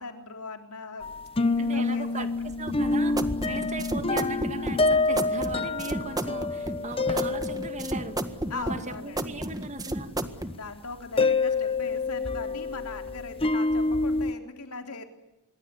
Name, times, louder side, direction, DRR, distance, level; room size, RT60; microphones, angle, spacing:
voice 1, 0.0-2.3 8.5-9.7 10.5-15.0, left 4 dB, 85° left, 5 dB, 3.7 m, -40 dB
sound 1, 1.0-8.5 8.9-9.0 10.2-10.3 11.2-14.3, left 3 dB, 25° left, 1.0 m, -27 dB
voice 2, 1.6-10.1, right 3 dB, 30° right, 9 dB, 2.1 m, -38 dB
sound 2, 2.7-10.5, right 1 dB, 15° right, 1.7 m, -32 dB
26.0 x 22.5 x 9.7 m, 0.92 s
head